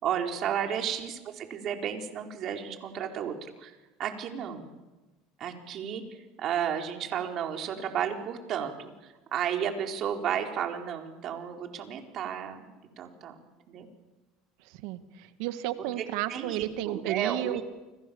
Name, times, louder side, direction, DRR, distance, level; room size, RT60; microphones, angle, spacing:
voice 1, 0.0-3.7 4.0-4.7 5.4-6.0 6.4-8.9 9.3-12.6 13.0-13.3 13.7-13.9 16.3-17.6, right 8 dB, 50° right, 4 dB, 4.7 m, -32 dB
voice 2, 14.7-17.6, right 14 dB, 70° right, 11 dB, 2.0 m, -33 dB
30.0 x 26.0 x 7.3 m, 1.1 s
hypercardioid pair, 80°, 0 cm